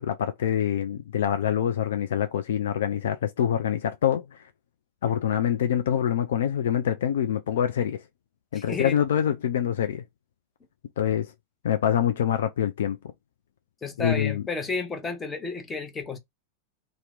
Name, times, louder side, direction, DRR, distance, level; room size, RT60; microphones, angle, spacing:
voice 1, 0.0-4.2 5.0-8.0 8.5-10.0 11.0-11.3 11.6-13.0 14.0-14.4, left 9 dB, 60° left, 0.3 m, -25 dB
voice 2, 8.5-9.0 13.8-16.2, left 4 dB, 15° left, 0.7 m, -32 dB
2.8 x 2.1 x 3.5 m
figure-of-eight pair, 90°, 0 cm